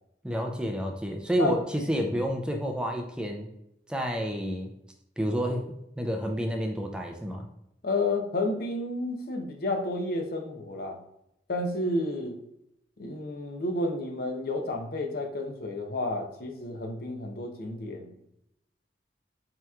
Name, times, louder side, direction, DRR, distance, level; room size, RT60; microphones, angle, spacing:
voice 1, 0.2-3.5 3.9-4.7 5.2-5.7 6.0-7.5, equal, 5° right, 2 dB, 0.4 m, -29 dB
voice 2, 7.8-11.0 11.5-12.4 13.0-18.2, left 2 dB, 55° left, 3 dB, 0.7 m, -31 dB
7.6 x 3.0 x 2.3 m, 0.81 s
head